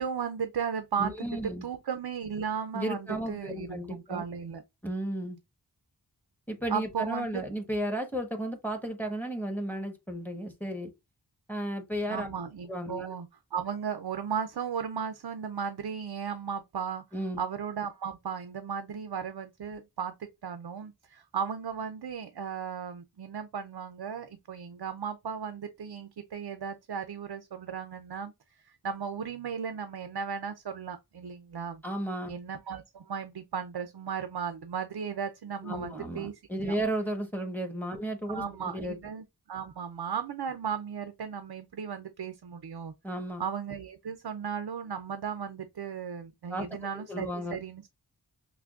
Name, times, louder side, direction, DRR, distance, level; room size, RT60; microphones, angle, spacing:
voice 1, 0.0-4.6 6.7-7.4 12.0-17.0 17.4-28.3 28.7-31.8 32.3-36.3 36.6-36.7 38.3-42.9 43.4-47.8, right 7 dB, 90° right, 0.5 m, -35 dB
voice 2, 1.0-1.6 2.7-4.3 4.8-5.4 6.5-10.9 11.5-12.3 12.7-13.1 17.1-17.4 31.8-32.3 35.6-39.0 43.0-43.4 46.5-46.7 46.9-47.6, right 1 dB, 5° left, 1.1 m, -34 dB
5.8 x 2.2 x 2.4 m
wide cardioid pair, 50°, 39 cm